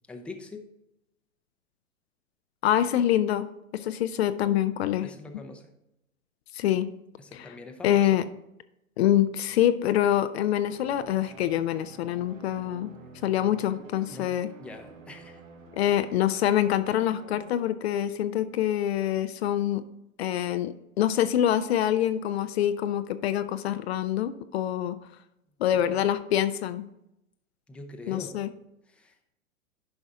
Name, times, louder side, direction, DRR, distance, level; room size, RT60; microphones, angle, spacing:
voice 1, 0.1-0.6 5.0-5.7 7.2-8.2 14.1-14.3 14.6-15.4 15.8-16.1 25.7-26.0 27.7-28.4 28.9-29.2, left 3 dB, 5° left, 4 dB, 0.6 m, -43 dB
voice 2, 2.6-3.5 3.7-5.1 6.5-6.9 7.3-7.5 7.8-8.2 9.0-12.9 13.2-14.5 15.7-19.8 20.2-25.0 25.6-26.9 28.1-28.5, left 11 dB, 50° left, 11 dB, 0.5 m, -25 dB
sound 1, 10.5-17.5, right 4 dB, 65° right, 1.8 m, -49 dB
10.5 x 5.3 x 3.6 m, 0.85 s
hypercardioid pair, 105°, 41 cm